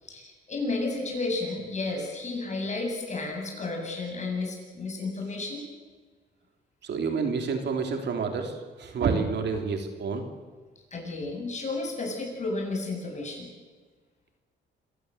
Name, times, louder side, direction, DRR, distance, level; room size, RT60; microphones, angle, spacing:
voice 1, 0.0-5.6 10.9-13.5, left 3 dB, 35° left, 2 dB, 8.0 m, -32 dB
voice 2, 6.8-10.3, right 5 dB, 60° right, 5 dB, 3.3 m, -29 dB
26.5 x 16.0 x 8.0 m, 1.4 s
cardioid pair, 90°, 20 cm